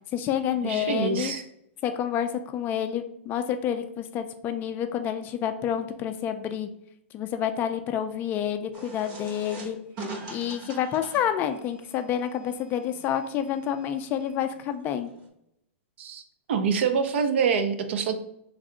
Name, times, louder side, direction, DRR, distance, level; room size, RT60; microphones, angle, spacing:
voice 1, 0.1-1.3 1.8-6.7 7.1-9.8 10.3-15.1, left 9 dB, 30° left, 8 dB, 0.3 m, -29 dB
voice 2, 0.6-1.4 16.0-16.2 16.5-18.1, right 6 dB, 70° right, 8 dB, 0.5 m, -25 dB
sound 1, 8.7-15.3, right 3 dB, 45° right, 0.9 m, -43 dB
3.3 x 2.6 x 3.8 m, 0.75 s
hypercardioid pair, 130°, 7 cm